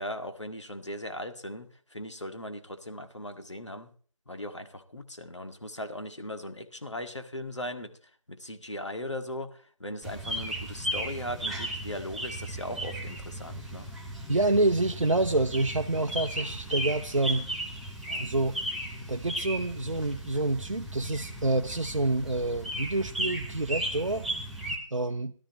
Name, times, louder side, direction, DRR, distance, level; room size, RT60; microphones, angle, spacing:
voice 1, 0.0-3.9 4.3-7.9 8.3-13.9, left 1 dB, 60° left, 7 dB, 1.9 m, -38 dB
sound 1, 10.0-24.8, right 1 dB, ahead, 0.6 m, -36 dB
voice 2, 14.3-17.5 18.1-18.6 19.0-24.2 24.9-25.3, right 2 dB, 65° right, 5 dB, 0.8 m, -27 dB
17.5 x 13.0 x 3.0 m, 0.43 s
figure-of-eight pair, 180°, 17 cm